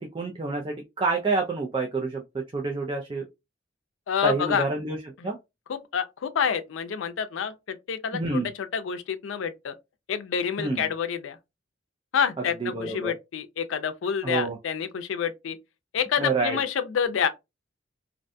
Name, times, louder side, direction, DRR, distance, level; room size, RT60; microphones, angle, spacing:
voice 1, 0.0-3.3 4.2-5.0 5.2-5.4 8.1-8.5 10.6-10.8 12.6-13.1 14.2-14.6 16.2-16.6, right 3 dB, 25° right, 0.4 m, -28 dB
voice 2, 4.1-4.6 5.2-5.3 5.7-9.7 10.1-11.4 12.1-15.6 15.9-17.3, left 7 dB, 90° left, 0.4 m, -28 dB
2.5 x 2.2 x 2.5 m
head